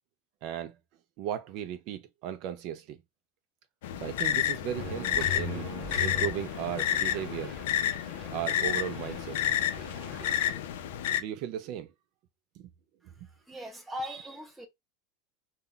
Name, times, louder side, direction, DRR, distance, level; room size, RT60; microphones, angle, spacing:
voice 1, 0.4-0.7 1.2-3.0 4.0-5.7 6.0-7.5 8.3-9.4 11.2-11.9, right 10 dB, 50° right, 0.3 m, -36 dB
sound 1, 3.8-11.2, left 11 dB, 85° left, 0.4 m, -30 dB
sound 2, 4.7-10.5, left 2 dB, 20° right, 1.1 m, -42 dB
voice 2, 13.5-14.7, equal, 5° right, 0.7 m, -39 dB
2.2 x 2.1 x 3.6 m
supercardioid pair, 155°, 0 cm